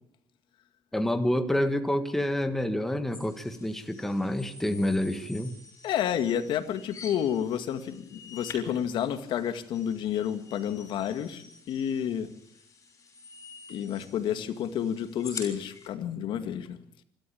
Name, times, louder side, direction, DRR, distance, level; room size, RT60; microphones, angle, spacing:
voice 1, 0.9-5.6, left 1 dB, 5° left, 8 dB, 1.5 m, -28 dB
sound 1, 3.1-15.9, left 4 dB, 35° left, 6.0 m, -47 dB
voice 2, 5.8-12.3 13.7-16.8, left 9 dB, 60° left, 10 dB, 2.0 m, -30 dB
27.0 x 13.0 x 8.6 m, 0.72 s
cardioid pair, 155°, 9 cm